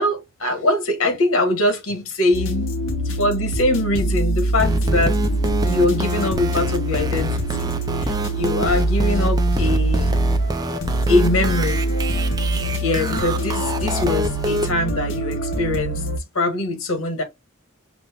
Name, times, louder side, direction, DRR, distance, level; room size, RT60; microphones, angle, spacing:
voice 1, 0.0-5.2 5.6-10.3 11.1-11.8 12.8-16.0 16.3-17.2, left 2 dB, 85° left, 1.3 m, -23 dB
sound 1, 2.3-16.2, right 1 dB, 65° left, 0.9 m, -23 dB
sound 2, 4.6-14.7, right 1 dB, 20° right, 0.4 m, -28 dB
5.2 x 2.1 x 3.5 m
head